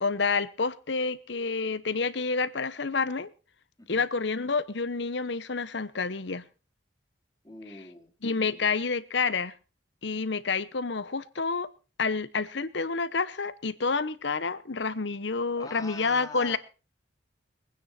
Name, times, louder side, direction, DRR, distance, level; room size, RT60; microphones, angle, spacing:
voice 1, 0.0-3.3 3.9-6.4 8.2-9.5 10.0-11.7 12.0-16.6, left 4 dB, 65° left, 0.9 m, -29 dB
voice 2, 7.4-8.1 15.6-16.6, left 2 dB, 20° left, 2.6 m, -44 dB
23.0 x 9.7 x 4.2 m
head